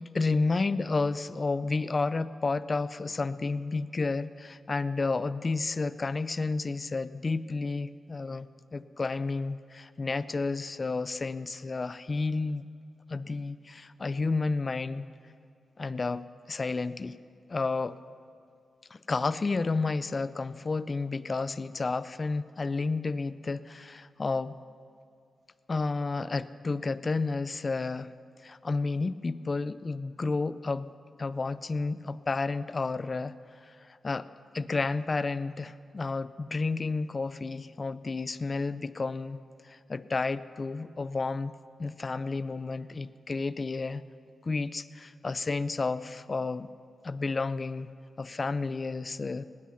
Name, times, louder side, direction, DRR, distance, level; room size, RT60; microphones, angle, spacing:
voice 1, 0.0-12.7 13.1-15.1 15.8-17.2 17.5-18.0 18.9-24.5 25.7-28.1 28.4-30.9 31.2-34.3 34.5-41.5 41.8-44.0 44.4-46.7 47.0-49.4, left 3 dB, 35° left, 15 dB, 0.4 m, -31 dB
19.0 x 9.9 x 5.7 m, 2.3 s
wide cardioid pair, 120°, 0 cm